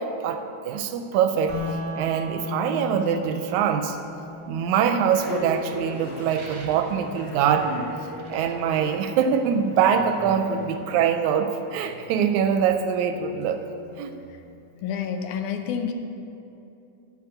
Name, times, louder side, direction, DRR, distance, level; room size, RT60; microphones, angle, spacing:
voice 1, 0.0-1.6 2.0-4.0 4.5-7.9 8.3-13.6 14.0-14.1, right 7 dB, 80° right, 7 dB, 1.8 m, -24 dB
sound 1, 1.5-11.5, left 3 dB, 30° right, 1.6 m, -39 dB
sound 2, 4.1-14.4, left 1 dB, 55° left, 2.9 m, -40 dB
sound 3, 6.2-7.2 8.0-9.7, right 3 dB, 55° right, 1.3 m, -46 dB
voice 2, 14.8-15.9, left 7 dB, 80° left, 6 dB, 2.1 m, -28 dB
7.7 x 6.3 x 7.8 m, 2.8 s
omnidirectional pair, 3.5 m